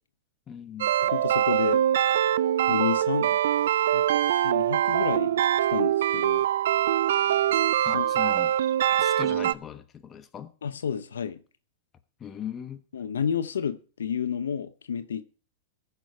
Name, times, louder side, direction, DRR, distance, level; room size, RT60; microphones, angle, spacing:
voice 1, 0.5-0.9 7.8-8.6 8.9-10.5 12.2-12.8, left 9 dB, 25° left, 1.2 m, -39 dB
sound 1, 0.8-9.5, right 11 dB, 75° right, 0.4 m, -23 dB
voice 2, 1.0-1.8 2.6-3.4 3.9-4.0 4.4-5.4 5.7-6.5 7.9-8.2 10.6-11.4 12.9-15.2, left 7 dB, 85° left, 0.8 m, -30 dB
15.0 x 6.9 x 4.7 m
hypercardioid pair, 120°, 0 cm